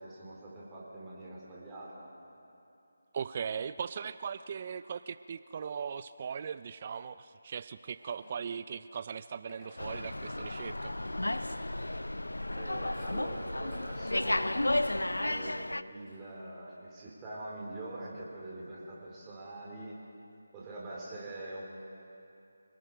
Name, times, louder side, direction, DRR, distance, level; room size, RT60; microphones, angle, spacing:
voice 1, 0.0-2.1 12.5-20.0 20.5-21.6, right 2 dB, 15° right, -5 dB, 4.3 m, -44 dB
voice 2, 3.1-10.9, right 6 dB, 35° right, 14 dB, 0.4 m, -39 dB
sound 1, 7.8-8.7 9.3-16.4, left 1 dB, 20° left, 5.9 m, -57 dB
Slam, 9.8-15.8, left 1 dB, 90° left, 0.6 m, -33 dB
27.0 x 19.5 x 5.0 m, 2.7 s
figure-of-eight pair, 160°, 0 cm